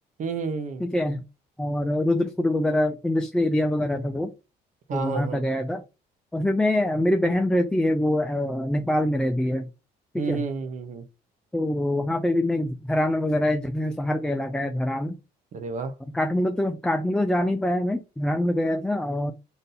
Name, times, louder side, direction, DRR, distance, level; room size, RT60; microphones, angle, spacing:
voice 1, 0.2-0.9 4.9-5.4 10.2-11.0 15.5-15.9, right 4 dB, 45° right, 0.7 m, -30 dB
voice 2, 0.8-1.2 1.6-4.3 4.9-5.8 6.3-9.7 10.1-10.4 11.5-15.1 16.1-19.3, left 1 dB, 5° left, 0.4 m, -24 dB
3.9 x 2.6 x 3.9 m
cardioid pair, 110°, 17 cm